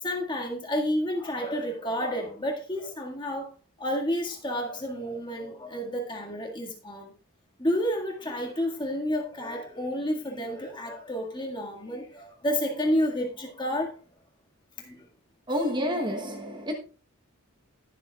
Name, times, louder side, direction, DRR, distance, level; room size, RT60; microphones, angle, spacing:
voice 1, 0.0-3.5 3.8-7.1 7.6-13.9 14.8-15.0 15.5-15.7, equal, 20° left, 1.8 m, -30 dB
voice 2, 15.5-16.8, equal, 20° right, 1.0 m, -29 dB
20.0 x 7.1 x 2.3 m
head